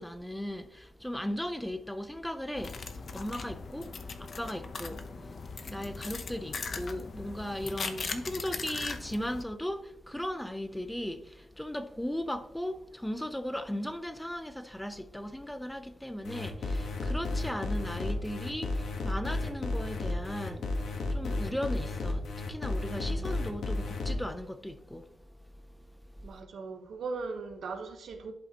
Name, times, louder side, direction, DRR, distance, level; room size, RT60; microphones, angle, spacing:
voice 1, 0.0-2.8 3.1-5.4 5.6-25.1 26.2-26.3, equal, 5° left, 0.5 m, -37 dB
sound 1, 2.6-9.4, left 4 dB, 50° left, 0.8 m, -39 dB
sound 2, 16.2-24.1, left 2 dB, 75° left, 1.3 m, -33 dB
voice 2, 22.8-23.3 26.2-28.3, right 4 dB, 75° right, 1.2 m, -39 dB
11.0 x 5.4 x 2.9 m
wide cardioid pair, 125°, 0 cm